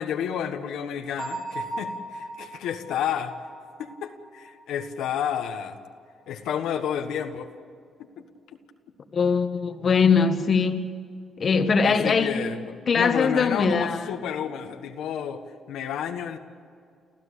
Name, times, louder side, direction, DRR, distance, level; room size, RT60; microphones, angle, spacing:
voice 1, 0.0-3.3 3.8-5.8 6.3-7.5 11.8-12.6 12.9-16.4, left 8 dB, 85° left, 1.4 m, -30 dB
Bell, 1.2-4.8, right 2 dB, 25° right, 5.9 m, -37 dB
voice 2, 9.1-10.8 11.4-12.5 12.9-14.1, left 5 dB, 45° left, 1.4 m, -21 dB
30.0 x 14.5 x 8.5 m
cardioid pair, 90°, 0 cm